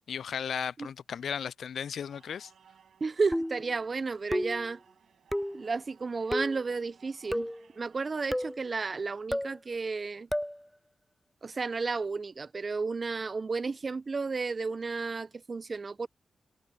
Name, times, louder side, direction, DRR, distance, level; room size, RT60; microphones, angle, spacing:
voice 1, 0.1-2.5, left 7 dB, 75° left, 0.4 m, -35 dB
sound 1, 2.1-8.5, right 7 dB, 75° right, 5.8 m, -62 dB
voice 2, 3.0-4.8 5.5-7.5 7.8-10.3 11.4-16.1, right 4 dB, 50° right, 1.0 m, -32 dB
sound 2, 3.3-3.7 4.3-4.7 5.3-5.6 6.3-6.6 7.3-7.6 8.3-8.6 9.3-9.6 10.3-10.6, equal, 5° left, 0.4 m, -32 dB
supercardioid pair, 45°, 0 cm